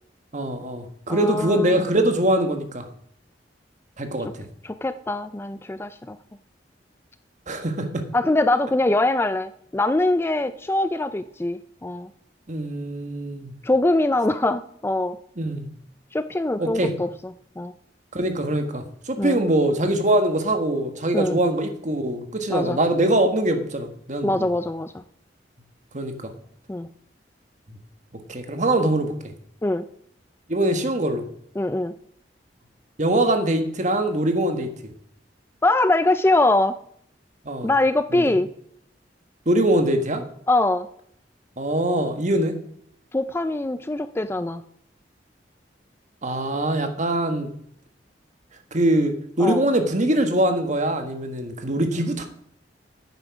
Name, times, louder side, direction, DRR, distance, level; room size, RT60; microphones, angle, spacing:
voice 1, 0.3-2.9 4.0-4.5 7.5-8.0 12.5-13.5 15.4-15.7 16.6-16.9 18.1-24.5 25.9-26.3 28.3-29.1 30.5-31.2 33.0-34.7 37.4-37.7 38.1-38.4 39.4-40.2 41.6-42.6 46.2-47.5 48.7-52.2, right 1 dB, 45° right, 6 dB, 1.5 m, -23 dB
voice 2, 1.1-1.8 4.6-6.2 8.1-12.1 13.6-15.2 16.1-17.7 19.2-19.4 21.1-21.4 22.5-22.8 24.2-24.9 26.7-26.9 29.6-29.8 31.6-31.9 35.6-36.8 37.6-38.5 40.5-40.9 43.1-44.6 49.4-49.6, left 2 dB, 15° left, 12 dB, 0.4 m, -23 dB
9.9 x 9.0 x 5.9 m, 0.67 s
head